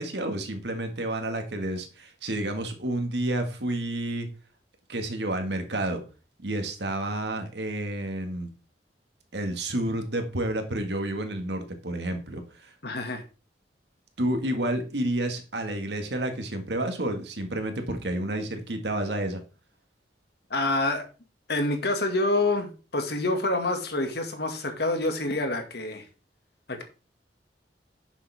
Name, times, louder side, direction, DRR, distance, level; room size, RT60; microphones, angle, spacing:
voice 1, 0.0-4.3 4.9-6.0 6.4-8.5 9.3-12.7 14.2-19.4, right 1 dB, 70° right, 6 dB, 1.8 m, -30 dB
voice 2, 12.8-13.2 20.5-21.0 21.5-26.1 26.7-26.8, left 2 dB, 65° left, 5 dB, 2.0 m, -27 dB
10.5 x 7.2 x 3.5 m, 0.34 s
head